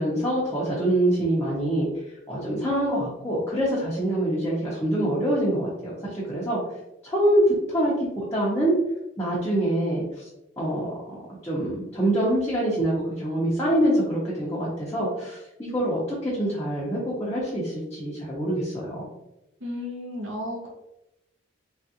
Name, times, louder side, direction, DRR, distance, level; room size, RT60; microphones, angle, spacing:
voice 1, 0.0-1.9 2.3-6.6 7.0-7.4 7.7-8.7 9.2-10.2 10.6-11.1 11.4-19.1, right 1 dB, 10° left, -8 dB, 0.6 m, -25 dB
voice 2, 19.6-20.7, left 1 dB, 70° right, -3 dB, 0.8 m, -33 dB
3.3 x 2.4 x 2.7 m, 0.87 s
head